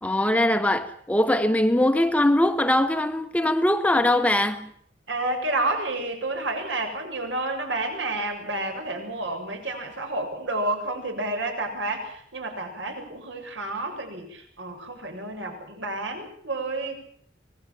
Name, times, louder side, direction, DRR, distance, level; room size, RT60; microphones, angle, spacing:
voice 1, 0.0-4.7, left 1 dB, 5° left, 1.1 m, -21 dB
voice 2, 5.1-16.9, right 2 dB, 70° right, 7.6 m, -30 dB
25.5 x 20.0 x 7.7 m
head